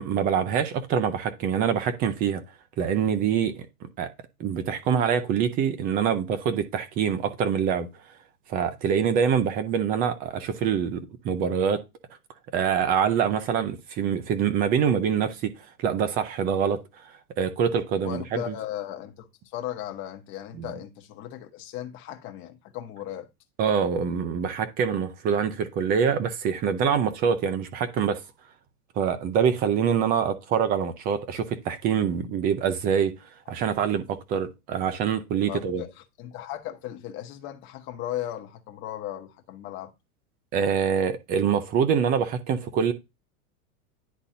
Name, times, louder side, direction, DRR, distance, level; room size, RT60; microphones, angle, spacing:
voice 1, 0.0-2.4 2.8-4.1 4.4-7.9 8.5-11.8 12.5-15.5 15.8-16.8 17.4-18.5 20.5-20.7 23.6-28.2 29.0-33.1 33.5-35.8 40.5-42.9, right 7 dB, 20° right, 0.6 m, -25 dB
voice 2, 18.0-23.3 35.5-39.9, left 12 dB, 25° left, 0.9 m, -36 dB
10.0 x 3.9 x 2.7 m
supercardioid pair, 155°, 44 cm